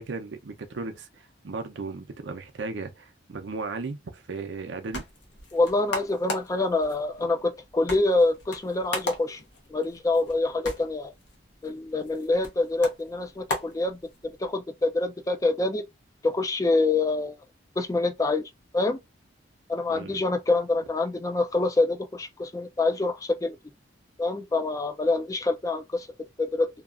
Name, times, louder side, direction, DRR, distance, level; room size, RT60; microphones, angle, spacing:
voice 1, 0.0-5.0 19.9-20.2, right 3 dB, 75° right, 0.5 m, -36 dB
sound 1, 4.5-14.5, left 1 dB, 75° left, 1.0 m, -38 dB
voice 2, 5.5-9.4 9.7-11.1 11.6-15.9 16.2-17.4 17.8-19.0 19.7-23.6 24.2-26.1 26.4-26.7, left 2 dB, 20° left, 0.3 m, -26 dB
2.8 x 2.3 x 2.3 m
head